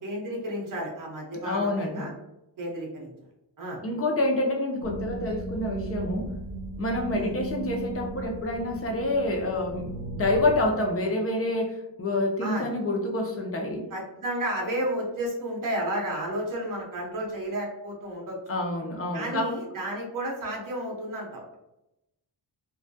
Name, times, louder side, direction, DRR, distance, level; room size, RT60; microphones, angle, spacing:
voice 1, 0.0-2.1 2.6-3.1 3.6-3.8 7.1-7.3 12.4-12.7 13.9-18.4 19.1-21.6, right 1 dB, 50° right, -2 dB, 0.9 m, -32 dB
voice 2, 1.4-2.1 3.8-6.3 6.8-13.9 18.5-19.5, left 2 dB, 35° left, 2 dB, 0.4 m, -27 dB
sound 1, 4.8-10.7, right 2 dB, 75° left, 0.6 m, -36 dB
2.2 x 2.1 x 2.6 m, 0.90 s
wide cardioid pair, 155°, 43 cm